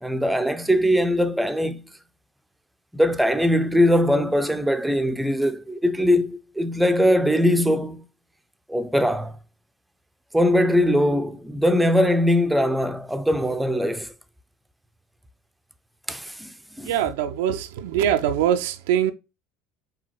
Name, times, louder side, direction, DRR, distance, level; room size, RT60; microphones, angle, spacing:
voice 1, 0.0-1.9 2.9-8.1 8.7-9.4 10.3-14.1 16.1-16.9, equal, 5° right, 0.5 m, -21 dB
voice 2, 16.8-19.1, right 10 dB, 70° right, 0.4 m, -23 dB
4.7 x 3.4 x 3.0 m
figure-of-eight pair, 70°, 0 cm